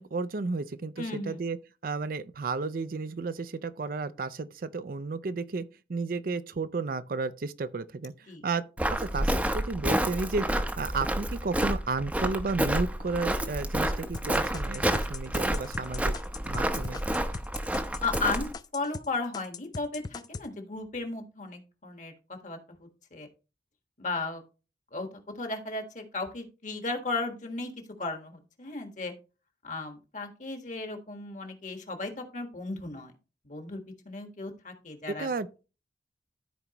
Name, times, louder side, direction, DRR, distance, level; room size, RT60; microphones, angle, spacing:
voice 1, 0.0-1.6 1.8-8.1 8.4-8.7 8.9-16.1 16.4-17.0 35.2-35.6, right 4 dB, 50° right, 0.5 m, -33 dB
voice 2, 1.0-1.4 8.3-8.4 18.0-22.1 22.4-23.3 24.0-24.4 24.9-25.1 25.4-27.7 28.0-29.1 29.6-33.1 33.4-35.3, left 3 dB, 45° left, 1.5 m, -35 dB
Walk footsteps, 8.8-18.5, right 1 dB, 10° right, 0.7 m, -29 dB
sound 1, 14.1-19.1 19.3-20.5, left 4 dB, 25° left, 0.3 m, -40 dB
13.5 x 4.6 x 2.9 m
head